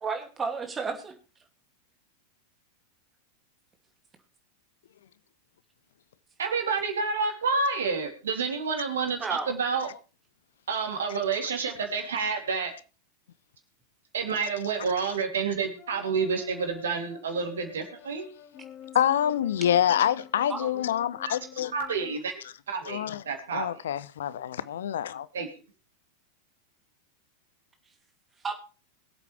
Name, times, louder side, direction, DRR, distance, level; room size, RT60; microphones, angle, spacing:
voice 1, 0.0-1.2 9.2-9.5 20.5-20.9 28.4-28.5, right 4 dB, 20° right, 2.5 m, -32 dB
voice 2, 6.4-9.9 10.7-12.7 14.1-18.3 21.3-21.4 21.7-22.3 22.7-23.8 25.3-25.5, right 5 dB, 65° right, 3.0 m, -29 dB
sound 1, 15.8-22.2, left 9 dB, 30° left, 1.7 m, -49 dB
voice 3, 18.9-21.7 22.9-23.2 23.5-25.3, left 10 dB, 60° left, 0.6 m, -26 dB
22.0 x 8.3 x 3.4 m
figure-of-eight pair, 90°, 0 cm